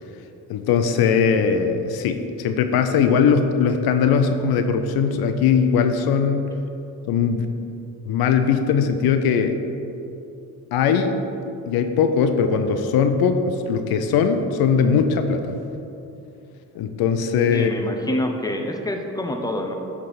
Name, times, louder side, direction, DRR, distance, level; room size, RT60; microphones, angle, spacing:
voice 1, 0.5-6.5 7.1-7.5 8.1-9.6 10.7-11.2 11.7-15.6 16.7-17.8, left 6 dB, 80° left, 7 dB, 0.6 m, -20 dB
voice 2, 17.5-19.8, left 1 dB, 10° left, 3 dB, 0.9 m, -26 dB
9.2 x 3.6 x 5.6 m, 2.9 s
supercardioid pair, 65°, 37 cm